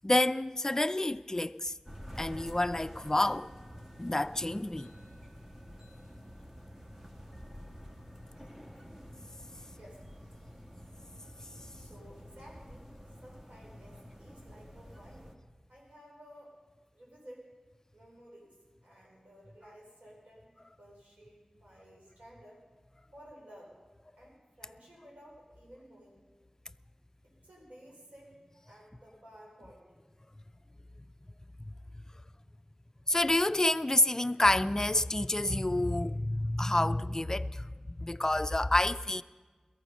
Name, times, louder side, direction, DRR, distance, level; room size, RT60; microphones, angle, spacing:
voice 1, 0.0-1.7 2.2-3.5 4.0-4.9 31.6-31.7 33.1-39.2, left 1 dB, 25° left, 0.4 m, -28 dB
sound 1, 1.9-15.4, equal, 20° right, 1.7 m, -49 dB
voice 2, 9.7-10.0 11.7-12.9 13.2-15.4 15.7-16.6 16.9-17.5 17.9-22.6 23.1-23.7 24.2-26.2 27.2-30.0 30.8-30.9 32.2-32.3, equal, 85° right, 4.6 m, -54 dB
17.5 x 14.0 x 5.4 m
wide cardioid pair, 50°, 2 cm